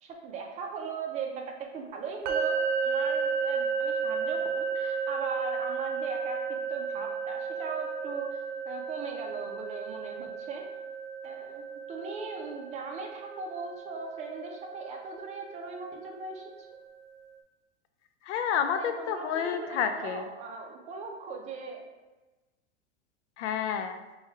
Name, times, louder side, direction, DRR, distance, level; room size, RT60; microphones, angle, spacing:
voice 1, 0.0-8.3 8.6-10.6 11.2-11.6 11.9-16.5 18.7-21.8, right 4 dB, 20° right, 1 dB, 0.4 m, -39 dB
sound 1, 2.3-16.1, right 5 dB, 80° right, 0.6 m, -33 dB
voice 2, 18.2-20.3 23.4-24.0, left 8 dB, 85° left, 7 dB, 0.6 m, -30 dB
3.1 x 2.3 x 4.3 m, 1.1 s
supercardioid pair, 140°, 34 cm